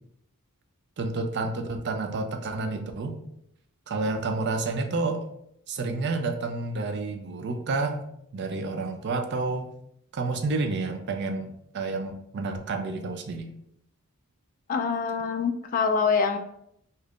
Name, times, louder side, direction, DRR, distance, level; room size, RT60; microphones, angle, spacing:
voice 1, 1.0-3.1 3.9-5.2 5.7-8.0 8.3-9.7 10.1-13.5, right 3 dB, 50° right, 6 dB, 0.4 m, -29 dB
voice 2, 14.7-16.4, left 5 dB, 40° left, 6 dB, 0.3 m, -25 dB
2.7 x 2.4 x 3.5 m, 0.74 s
head